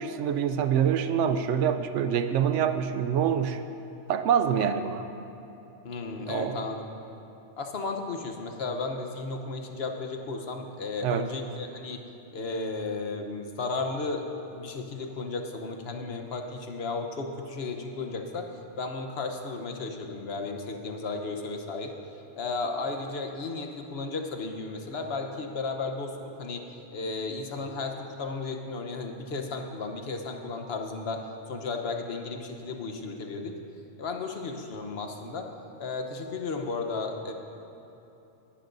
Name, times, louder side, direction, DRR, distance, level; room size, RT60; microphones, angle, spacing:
voice 1, 0.0-3.6 4.1-5.0 6.3-6.6 11.0-11.3, right 8 dB, 85° right, 9 dB, 0.9 m, -26 dB
voice 2, 5.8-6.8 7.6-12.0 12.3-14.2 14.5-18.5 18.8-21.9 22.4-26.6 26.9-31.2 31.5-33.6 34.0-35.5 35.8-37.3, left 3 dB, 60° left, 4 dB, 1.2 m, -34 dB
19.0 x 11.5 x 2.6 m, 3.0 s
omnidirectional pair, 1.2 m